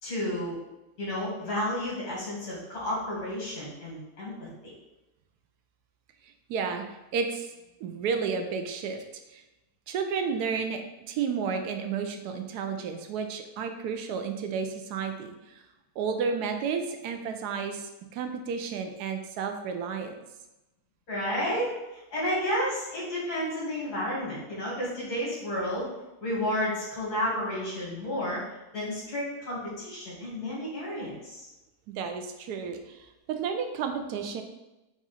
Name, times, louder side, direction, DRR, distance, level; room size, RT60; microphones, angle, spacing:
voice 1, 0.0-0.6 1.0-4.7 21.1-21.7 21.9-25.9 26.2-28.4 28.7-31.5, equal, 90° left, -6 dB, 2.3 m, -31 dB
voice 2, 6.5-6.8 7.1-7.5 7.8-9.0 9.3-9.4 9.9-10.8 11.1-15.6 16.0-20.1 32.0-33.0 33.3-34.4, right 6 dB, 90° right, 6 dB, 1.1 m, -31 dB
4.9 x 2.4 x 4.1 m, 1.0 s
omnidirectional pair, 1.6 m